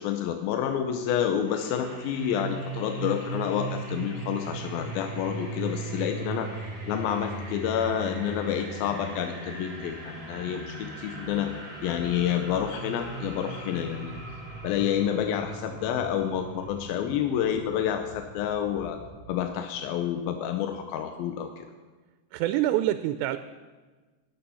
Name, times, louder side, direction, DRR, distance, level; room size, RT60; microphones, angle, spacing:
voice 1, 0.0-6.5 6.9-11.5 11.8-14.2 14.6-19.0 19.3-21.7, left 9 dB, 75° left, 6 dB, 2.2 m, -29 dB
sound 1, 1.4-19.4, right 3 dB, 55° right, 7.1 m, -38 dB
voice 2, 22.3-23.4, right 14 dB, 90° right, 11 dB, 2.8 m, -26 dB
18.5 x 8.7 x 5.6 m, 1.3 s
omnidirectional pair, 4.9 m